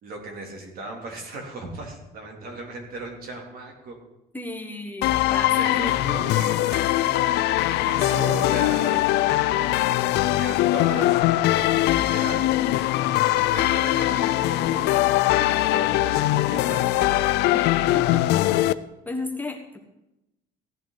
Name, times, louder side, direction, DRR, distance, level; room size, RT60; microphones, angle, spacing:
voice 1, 0.0-4.0 5.6-7.1 7.7-9.6 10.2-12.5 13.2-15.1 15.7-17.1, right 2 dB, 60° right, 0 dB, 3.1 m, -37 dB
voice 2, 4.3-5.8 17.5-17.6 17.9-18.2 19.0-19.8, left 2 dB, 10° left, 2 dB, 1.3 m, -33 dB
sound 1, 5.0-18.7, left 15 dB, 85° left, 0.5 m, -21 dB
16.0 x 9.1 x 4.0 m, 0.93 s
cardioid pair, 110°, 17 cm